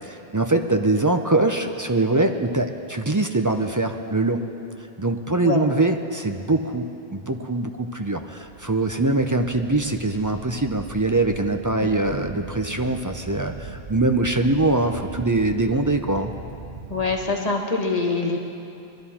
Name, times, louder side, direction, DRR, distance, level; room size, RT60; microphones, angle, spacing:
voice 1, 0.1-4.4 5.0-16.3, right 2 dB, 25° right, 5 dB, 0.5 m, -23 dB
sound 1, 8.4-17.2, right 3 dB, 85° right, 2.2 m, -40 dB
voice 2, 11.8-12.2 16.9-18.4, left 3 dB, 40° left, 0 dB, 1.4 m, -25 dB
21.5 x 12.5 x 4.3 m, 2.6 s
omnidirectional pair, 1.0 m